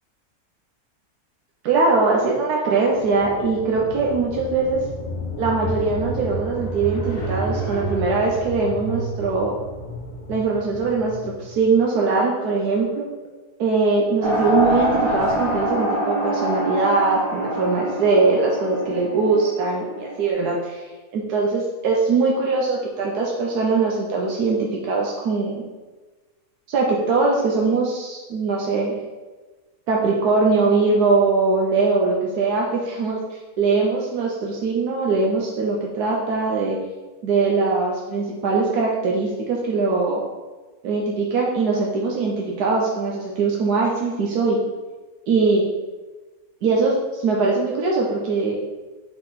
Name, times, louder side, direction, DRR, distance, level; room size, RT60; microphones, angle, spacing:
voice 1, 1.6-4.8 5.4-9.5 10.3-13.1 13.6-25.6 26.7-29.0 29.9-36.8 37.2-40.2 40.8-44.6 45.3-45.7 46.6-48.6, right 4 dB, 80° right, -2 dB, 1.3 m, -21 dB
sound 1, 2.9-11.7, right 1 dB, 30° left, 0.9 m, -31 dB
sound 2, 14.2-20.3, right 1 dB, 40° right, 1.4 m, -25 dB
7.4 x 3.9 x 4.1 m, 1.3 s
omnidirectional pair, 1.6 m